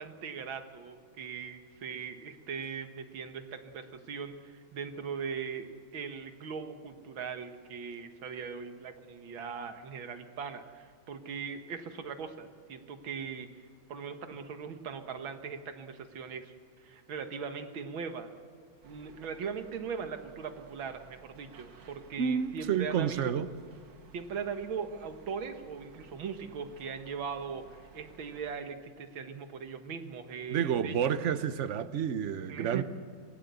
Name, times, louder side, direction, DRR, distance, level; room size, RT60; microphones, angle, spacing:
voice 1, 0.0-13.5 13.9-16.5 16.8-18.3 18.8-23.3 24.1-30.9 32.5-32.8, right 6 dB, 90° right, 7 dB, 2.2 m, -40 dB
sound 1, 18.8-28.6, right 6 dB, 65° right, 2.2 m, -57 dB
voice 2, 22.2-23.5 30.5-32.8, right 8 dB, 50° right, 12 dB, 1.0 m, -30 dB
25.5 x 19.5 x 8.2 m, 2.2 s
omnidirectional pair, 2.1 m